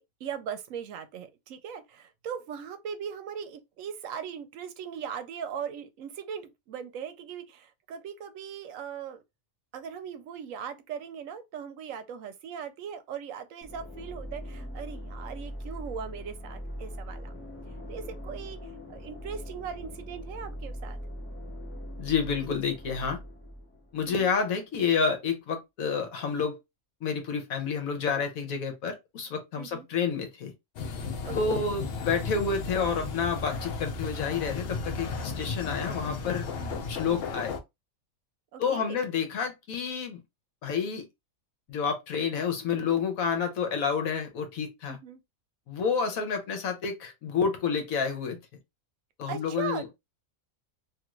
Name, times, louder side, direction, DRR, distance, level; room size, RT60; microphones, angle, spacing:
voice 1, 0.0-9.2 9.7-17.3 17.9-18.6 18.9-21.0 24.1-24.4 29.6-29.9 31.2-31.7 36.6-36.9 38.5-39.0 44.9-45.2 49.3-49.9, right 7 dB, 75° right, 0.9 m, -39 dB
sound 1, 13.6-24.4, equal, 20° left, 0.3 m, -41 dB
voice 2, 22.0-23.2 23.9-26.6 27.0-30.5 31.3-36.5 36.9-37.6 38.6-40.2 40.6-41.0 41.7-45.0 45.7-48.4 49.2-49.9, left 6 dB, 80° left, 1.2 m, -29 dB
sound 2, 30.8-37.6, left 4 dB, 60° left, 0.6 m, -34 dB
2.7 x 2.5 x 3.0 m
omnidirectional pair, 1.4 m